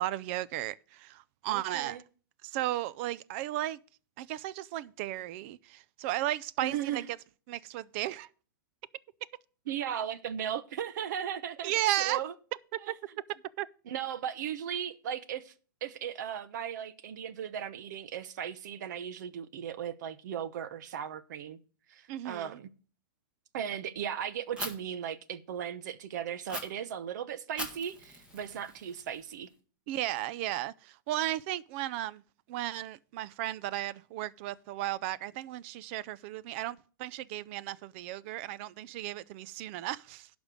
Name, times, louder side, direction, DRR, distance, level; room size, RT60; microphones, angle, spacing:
voice 1, 0.0-2.0 2.4-3.8 4.2-7.0 7.5-8.3 11.6-12.2 12.9-13.0 13.6-13.7 22.1-22.6 29.9-32.2 32.5-40.3, right 14 dB, 35° right, 0.4 m, -34 dB
voice 2, 1.5-2.0 6.6-7.1 9.7-11.7 12.0-12.3 12.8-12.9 13.9-15.5 15.8-21.6 21.9-22.7 23.5-29.5, right 9 dB, 55° right, 0.9 m, -37 dB
Fire, 24.6-24.7 26.5-26.6 27.6-29.5, equal, 10° right, 1.6 m, -41 dB
11.5 x 5.2 x 7.5 m
hypercardioid pair, 155°, 11 cm